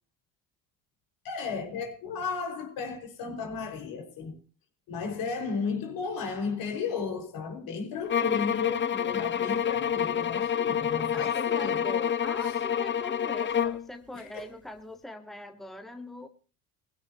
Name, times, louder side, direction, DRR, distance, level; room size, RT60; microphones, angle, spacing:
voice 1, 1.2-4.3 4.9-11.8 12.4-12.6 14.1-14.5, left 5 dB, 65° left, 5.4 m, -34 dB
sound 1, 8.1-13.9, left 8 dB, 30° left, 0.9 m, -28 dB
voice 2, 11.1-16.3, left 1 dB, ahead, 1.6 m, -42 dB
20.5 x 15.5 x 3.0 m
supercardioid pair, 80°, 38 cm